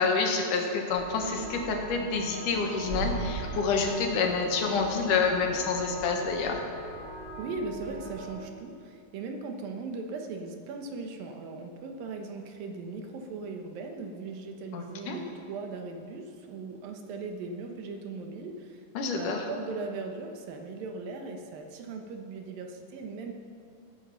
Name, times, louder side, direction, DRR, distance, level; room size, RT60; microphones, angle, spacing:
voice 1, 0.0-6.6 14.7-15.2 18.9-19.5, left 4 dB, 70° left, 2 dB, 2.9 m, -28 dB
sound 1, 0.9-8.3, right 2 dB, 20° right, 3.9 m, -39 dB
voice 2, 7.4-18.8 19.1-23.3, right 3 dB, 85° right, 3 dB, 3.0 m, -38 dB
18.5 x 9.3 x 5.7 m, 2.4 s
omnidirectional pair, 4.0 m